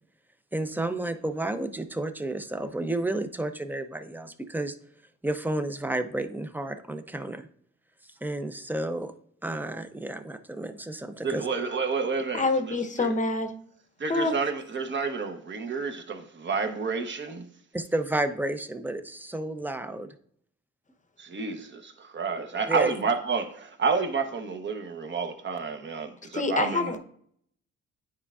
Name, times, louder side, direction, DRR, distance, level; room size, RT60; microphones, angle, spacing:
voice 1, 0.5-4.8 5.2-7.5 8.2-9.1 9.4-11.5 17.7-20.1 22.7-22.9, right 1 dB, 5° right, 0.5 m, -31 dB
voice 2, 11.2-13.1 14.0-17.4 21.2-26.9, right 5 dB, 40° right, 0.9 m, -30 dB
voice 3, 12.3-13.5 14.1-14.3 26.3-27.0, left 3 dB, 25° left, 0.8 m, -26 dB
9.5 x 4.4 x 2.4 m
cardioid pair, 90°, 30 cm